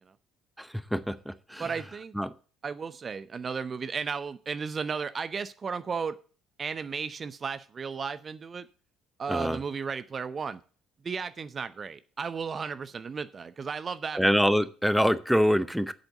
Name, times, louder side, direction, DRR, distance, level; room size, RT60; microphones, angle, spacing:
voice 1, 0.6-1.7 2.1-2.3 9.3-9.6 14.1-15.9, equal, ahead, 14 dB, 0.8 m, -25 dB
voice 2, 1.6-2.1 2.6-6.2 6.6-8.7 9.2-10.6 11.0-14.3, right 5 dB, 35° right, 14 dB, 0.7 m, -34 dB
8.3 x 8.0 x 6.7 m, 0.38 s
figure-of-eight pair, 55°, 0 cm